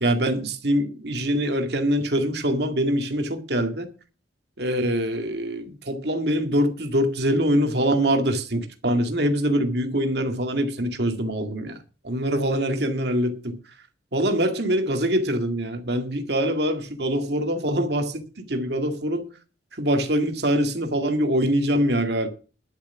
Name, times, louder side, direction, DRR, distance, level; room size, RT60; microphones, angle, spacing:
voice 1, 0.0-3.9 4.6-11.8 12.0-13.6 14.1-19.3 19.7-22.3, equal, 60° right, 2.1 m, -24 dB
11.0 x 7.5 x 7.0 m
head